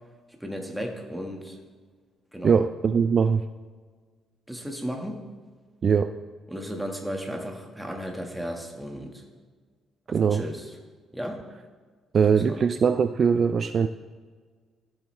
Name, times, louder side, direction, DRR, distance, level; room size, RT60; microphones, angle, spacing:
voice 1, 0.4-1.6 2.3-2.6 4.5-5.3 6.5-9.2 10.1-10.7 11.1-11.5 12.3-12.6, equal, ahead, 2 dB, 1.4 m, -35 dB
voice 2, 2.4-3.5 5.8-6.1 10.1-10.4 12.1-13.9, right 6 dB, 40° right, 10 dB, 0.3 m, -21 dB
15.0 x 7.6 x 3.2 m, 1.5 s
cardioid pair, 130°, 0 cm